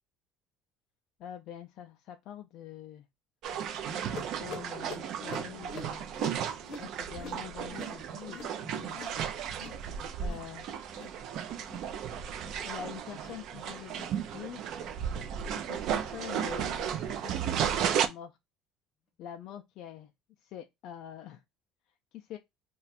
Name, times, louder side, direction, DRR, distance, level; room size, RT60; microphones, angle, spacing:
voice 1, 1.2-3.1 3.8-6.1 6.8-9.0 10.2-10.7 12.6-14.6 15.5-18.3 19.2-20.1 20.4-21.4 22.1-22.4, left 10 dB, 50° left, 0.3 m, -45 dB
sound 1, 3.4-18.1, right 8 dB, 45° right, 0.4 m, -34 dB
sound 2, 4.2-9.2 9.5-9.9 10.1-10.5 10.8-11.2 11.6-11.9 12.3-12.7 13.1-13.4 13.9-14.2 14.7-15.0 15.6-15.8 16.5-16.6 17.3-17.4, left 2 dB, 30° left, 0.9 m, -46 dB
2.4 x 2.2 x 4.0 m
cardioid pair, 175°, 0 cm